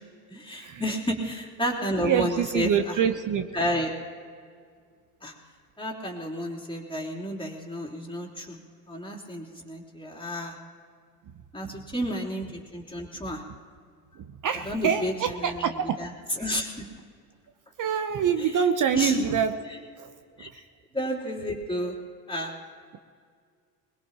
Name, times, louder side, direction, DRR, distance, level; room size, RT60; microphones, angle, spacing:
voice 1, 0.3-3.0 3.5-3.9 5.2-5.3 5.8-8.6 8.9-10.6 11.5-13.4 14.6-15.1 15.4-15.5 16.0-16.1 16.4-16.9 18.9-19.1 20.4-20.5 20.9-21.9 22.3-22.5, equal, 10° left, -1 dB, 3.3 m, -31 dB
voice 2, 1.9-3.5 11.3-11.4 11.6-11.8 13.5-13.6 14.1-16.0 17.8-19.6 20.0-20.1 20.4-20.6, right 8 dB, 40° right, 9 dB, 0.9 m, -26 dB
22.0 x 20.5 x 3.0 m, 2.1 s
hypercardioid pair, 80°, 50 cm